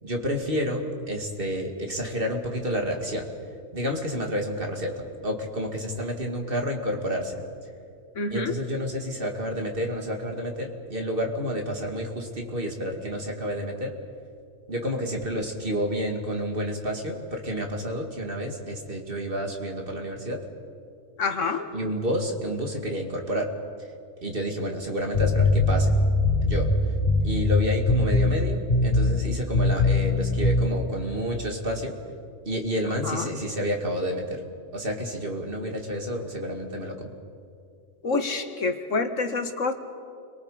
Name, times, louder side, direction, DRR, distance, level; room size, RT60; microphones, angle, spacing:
voice 1, 0.0-3.3 3.7-7.4 8.3-13.9 14.7-20.4 21.7-23.5 24.2-26.0 26.4-26.7 27.2-32.0 32.5-34.4 34.7-37.1, equal, 45° right, 2 dB, 2.5 m, -30 dB
voice 2, 8.1-8.5 21.2-21.7 33.0-33.3 38.0-39.7, left 4 dB, 85° left, 7 dB, 1.8 m, -27 dB
sound 1, 25.1-27.6 27.9-28.4 28.7-29.2 29.5-30.7, left 2 dB, 35° left, 1.2 m, -21 dB
29.5 x 23.0 x 5.0 m, 2.4 s
omnidirectional pair, 1.3 m